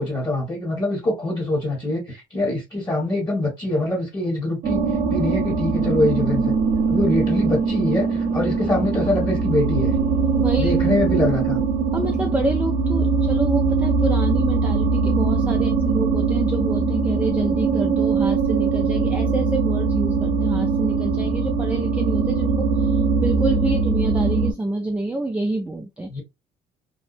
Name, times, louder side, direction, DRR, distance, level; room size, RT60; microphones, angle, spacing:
voice 1, 0.0-4.8 5.1-6.5 6.9-9.9 10.6-11.6 26.1-26.2, left 1 dB, 25° left, 1.3 m, -24 dB
sound 1, 4.6-24.5, right 4 dB, 55° right, 0.9 m, -21 dB
voice 2, 10.3-10.8 11.9-26.2, right 2 dB, 10° right, 0.3 m, -27 dB
2.7 x 2.1 x 2.4 m
cardioid pair, 110°, 17 cm